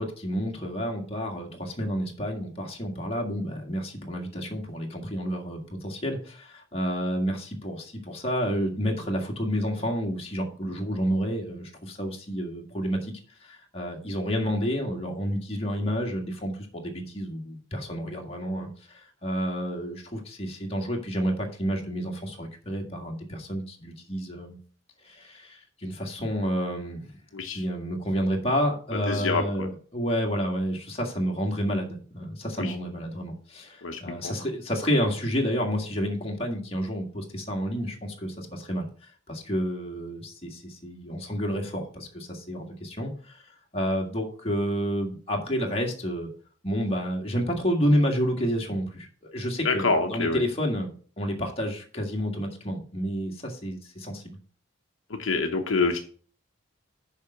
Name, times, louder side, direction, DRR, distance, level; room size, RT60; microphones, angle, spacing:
voice 1, 0.0-13.1 13.4-24.6 25.0-27.0 27.5-43.4 43.7-46.3 46.6-50.9 51.2-54.4, equal, 30° left, 0 dB, 1.9 m, -30 dB
voice 2, 27.3-27.6 29.1-29.7 32.6-32.7 33.8-34.3 49.6-50.4 55.1-56.0, left 3 dB, 70° left, 4 dB, 1.0 m, -26 dB
6.9 x 5.6 x 6.7 m, 0.42 s
head